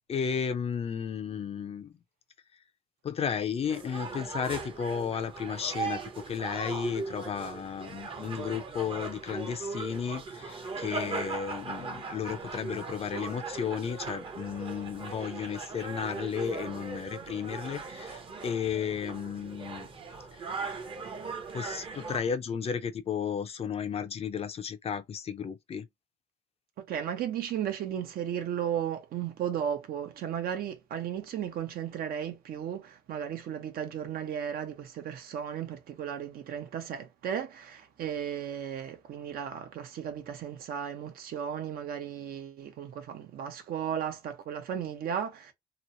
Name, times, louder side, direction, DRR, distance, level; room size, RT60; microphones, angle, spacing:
voice 1, 0.1-1.9 3.0-19.9 20.6-20.7 21.5-25.9, left 7 dB, 35° left, 0.5 m, -33 dB
sound 1, 3.7-22.2, right 4 dB, 30° right, 0.8 m, -39 dB
voice 2, 26.8-45.5, right 9 dB, 60° right, 0.8 m, -35 dB
3.0 x 2.1 x 2.6 m
cardioid pair, 110°, 17 cm